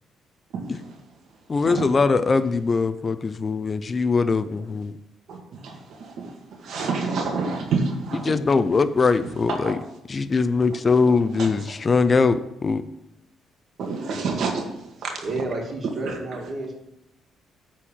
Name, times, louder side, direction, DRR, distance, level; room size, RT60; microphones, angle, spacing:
voice 1, 0.5-0.9 1.7-1.9 5.3-6.3 6.6-8.3 9.5-9.8 11.1-11.5 13.8-15.2 15.8-16.2, right 4 dB, 75° right, 2 dB, 1.9 m, -29 dB
voice 2, 1.5-4.9 8.2-9.8 10.1-12.8, left 4 dB, 35° left, 13 dB, 0.5 m, -21 dB
voice 3, 15.2-16.7, right 2 dB, 45° right, 1 dB, 2.3 m, -30 dB
8.8 x 4.4 x 7.3 m, 0.86 s
cardioid pair, 90°, 0 cm